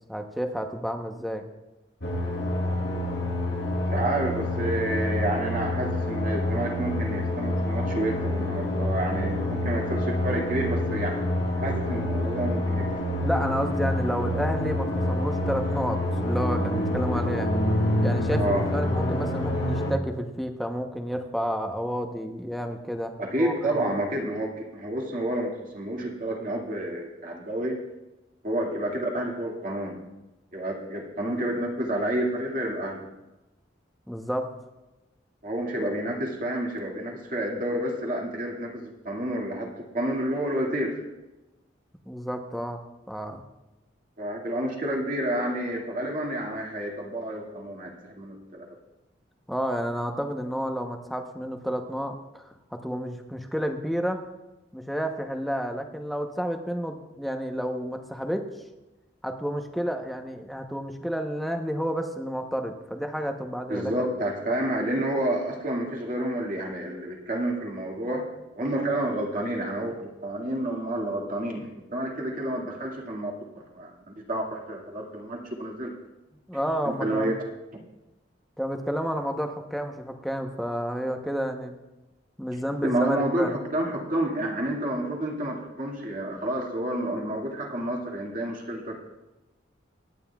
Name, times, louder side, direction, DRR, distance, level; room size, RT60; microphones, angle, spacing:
voice 1, 0.1-1.5 13.2-17.5 18.0-23.8 34.1-34.5 42.1-43.4 49.5-54.3 54.7-58.5 59.2-63.9 76.5-77.3 78.6-81.7 82.4-83.6, equal, ahead, 4 dB, 0.9 m, -30 dB
sound 1, 2.0-19.9, left 1 dB, 60° left, 1.8 m, -27 dB
voice 2, 3.9-11.2 11.6-12.9 18.4-18.7 23.2-27.8 28.4-30.0 30.5-33.0 35.4-40.9 44.2-48.7 63.7-68.2 68.5-69.9 70.2-73.9 74.3-75.9 76.8-77.4 82.8-89.0, right 1 dB, 45° right, -1 dB, 2.1 m, -29 dB
24.0 x 9.4 x 2.4 m, 1.0 s
head